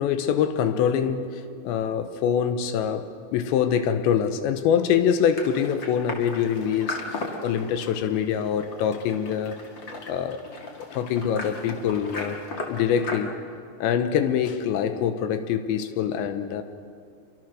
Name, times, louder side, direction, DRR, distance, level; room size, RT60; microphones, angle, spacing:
voice 1, 0.0-9.6 10.1-10.4 10.8-12.4 12.7-13.4 13.8-16.6, left 8 dB, 75° left, 9 dB, 3.0 m, -25 dB
sound 1, 5.3-13.2, left 2 dB, 60° left, 1.2 m, -37 dB
28.5 x 23.5 x 6.3 m, 2.4 s
omnidirectional pair, 5.7 m